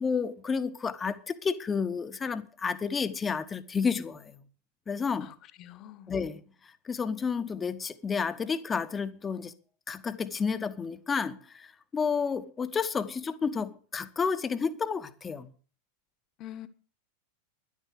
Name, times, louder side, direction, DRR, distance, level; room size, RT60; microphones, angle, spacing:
voice 1, 0.0-4.4 4.9-5.3 6.1-9.5 9.9-15.5, left 5 dB, 20° left, 1.1 m, -31 dB
voice 2, 5.2-6.2 16.4-16.7, left 12 dB, 35° left, 1.3 m, -45 dB
12.5 x 11.0 x 6.5 m
figure-of-eight pair, 90°, 0 cm